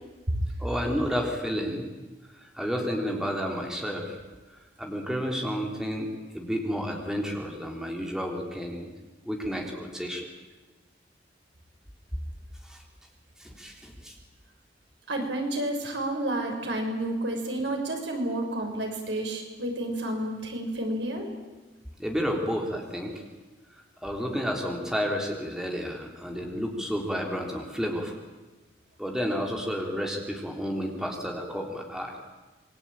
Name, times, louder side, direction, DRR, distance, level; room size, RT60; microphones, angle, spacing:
voice 1, 0.6-1.9 2.3-4.2 4.5-8.9 9.3-10.3 12.6-12.8 13.4-14.1 22.0-23.2 24.0-28.2 29.0-32.1, equal, 5° right, 1 dB, 3.8 m, -31 dB
voice 2, 15.1-21.3, right 1 dB, 85° right, 2 dB, 6.4 m, -30 dB
27.5 x 22.5 x 9.1 m, 1.2 s
head